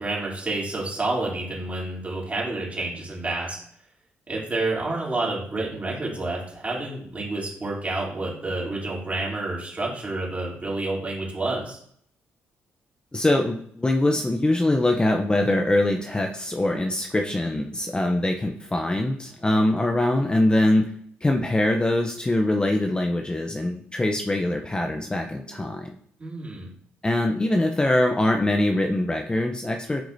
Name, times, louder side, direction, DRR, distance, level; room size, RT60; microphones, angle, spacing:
voice 1, 0.0-3.6 4.3-11.8 26.2-26.7, right 2 dB, 30° right, -4 dB, 3.1 m, -29 dB
voice 2, 13.1-20.9 21.2-25.9 27.0-30.0, left 1 dB, 20° left, 3 dB, 0.7 m, -23 dB
10.5 x 4.7 x 2.7 m, 0.63 s
cardioid pair, 70°, 5 cm